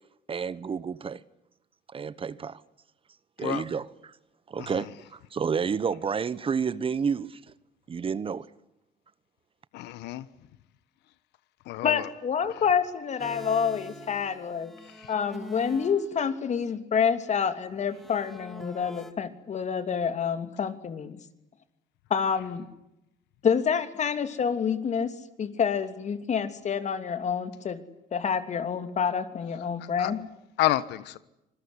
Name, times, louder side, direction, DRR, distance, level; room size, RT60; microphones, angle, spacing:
voice 1, 0.3-1.2 1.9-2.6 3.4-4.1 4.5-7.4 7.9-8.5, right 6 dB, 35° right, 1.1 m, -30 dB
voice 2, 4.6-4.9 9.7-10.3 11.6-12.1 12.5-12.6 14.8-15.1 30.0-30.1 30.6-31.2, left 15 dB, 85° left, 1.3 m, -30 dB
voice 3, 11.8-14.7 15.1-21.2 22.1-22.7 23.4-27.8 28.1-30.2, left 7 dB, 45° left, 3.0 m, -28 dB
sound 1, 13.2-16.1 17.8-19.1, equal, ahead, 2.3 m, -44 dB
26.0 x 21.0 x 9.8 m
cardioid pair, 110°, 17 cm